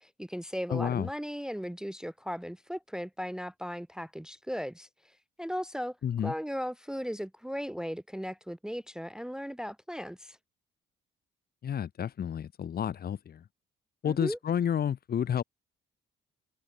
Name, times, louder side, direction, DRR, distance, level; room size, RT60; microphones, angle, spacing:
voice 1, 0.0-4.9 5.4-6.0 6.2-10.4 14.1-14.4, equal, 5° right, 0.7 m, -37 dB
voice 2, 0.7-1.1 6.0-6.3 11.6-13.4 14.0-15.4, left 8 dB, 50° left, 1.2 m, -30 dB
cardioid pair, 90°, 20 cm